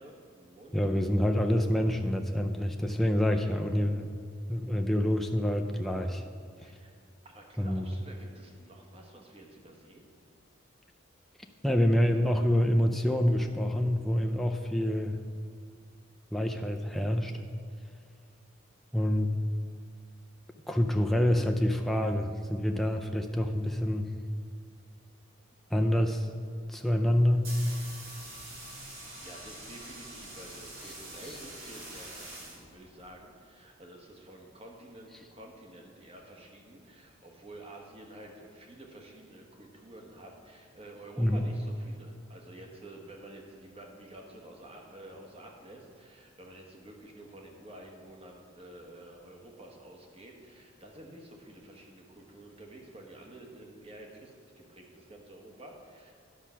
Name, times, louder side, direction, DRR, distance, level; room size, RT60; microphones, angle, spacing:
voice 1, 0.0-0.8 6.6-6.9 7.2-10.1 29.2-56.1, right 1 dB, 30° right, 1 dB, 1.1 m, -50 dB
voice 2, 0.7-4.1 4.5-6.2 7.6-7.9 11.6-15.2 16.3-17.3 18.9-19.3 20.7-24.1 25.7-26.3 26.7-27.5 41.2-41.5, equal, ahead, 3 dB, 0.4 m, -27 dB
sound 1, 27.1-33.1, right 1 dB, 75° right, 2.5 m, -45 dB
10.0 x 6.1 x 5.6 m, 2.1 s
head